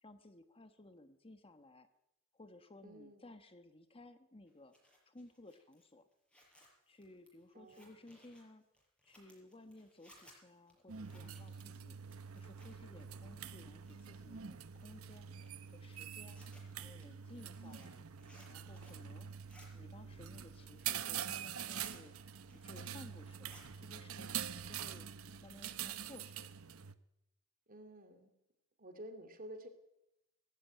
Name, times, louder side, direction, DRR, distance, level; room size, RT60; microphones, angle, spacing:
voice 1, 0.0-1.9 2.3-4.7 5.1-6.0 6.9-8.6 9.0-12.0 12.3-15.3 15.7-16.4 16.8-18.0 18.5-19.3 19.7-22.1 22.5-25.1 25.4-26.5, left 2 dB, 25° left, 9 dB, 1.2 m, -57 dB
voice 2, 2.8-3.3 7.5-7.9 27.7-28.3 28.8-29.7, right 1 dB, 45° right, 9 dB, 2.9 m, -51 dB
Zipper (clothing), 4.5-13.0 13.3-14.3 14.7-19.1 19.3-19.7 20.1-21.2 21.5-22.0 22.3-23.0 23.3-23.7, equal, 5° left, 6.0 m, -64 dB
sound 1, 10.9-26.9, right 8 dB, 90° right, 0.9 m, -45 dB
18.5 x 16.0 x 9.0 m, 0.87 s
head